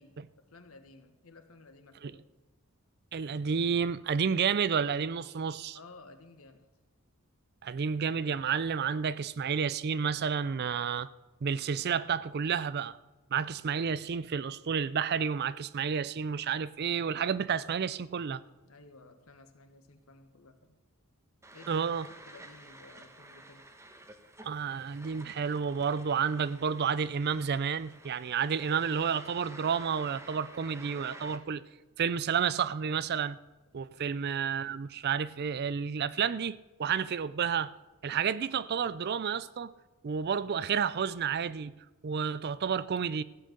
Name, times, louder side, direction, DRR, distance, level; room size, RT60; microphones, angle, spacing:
voice 1, 0.0-2.2 5.7-6.7 18.6-20.8 21.5-21.8 22.2-23.6 34.0-34.2, left 3 dB, 70° left, 1.4 m, -55 dB
voice 2, 3.1-5.8 7.6-11.1 11.4-13.0 13.3-18.4 21.7-22.1 24.4-31.6 32.0-33.4 33.7-37.7 38.0-39.7 40.0-41.7 42.0-43.2, right 6 dB, 45° right, 0.4 m, -30 dB
sound 1, 21.4-31.4, right 2 dB, 15° right, 1.1 m, -51 dB
15.0 x 7.8 x 6.6 m
head